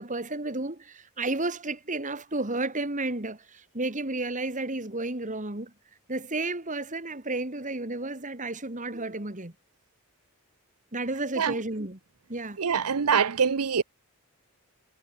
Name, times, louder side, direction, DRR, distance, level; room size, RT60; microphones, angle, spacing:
voice 1, 0.0-5.7 6.1-9.5 10.9-12.0 12.3-12.6, right 2 dB, 35° right, 2.8 m, -32 dB
voice 2, 12.6-13.8, right 6 dB, 90° right, 0.8 m, -24 dB
head